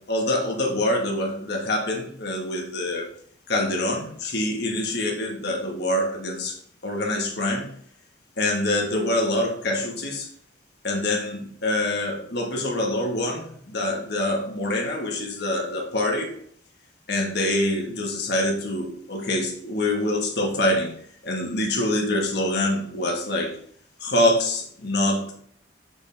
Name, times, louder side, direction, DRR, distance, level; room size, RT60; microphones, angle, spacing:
voice 1, 0.1-3.1 3.5-6.5 6.8-7.7 8.4-10.3 10.8-16.3 17.1-20.9 21.2-23.6 24.0-25.3, left 1 dB, 60° left, 0 dB, 1.5 m, -25 dB
6.2 x 5.4 x 3.4 m, 0.65 s
head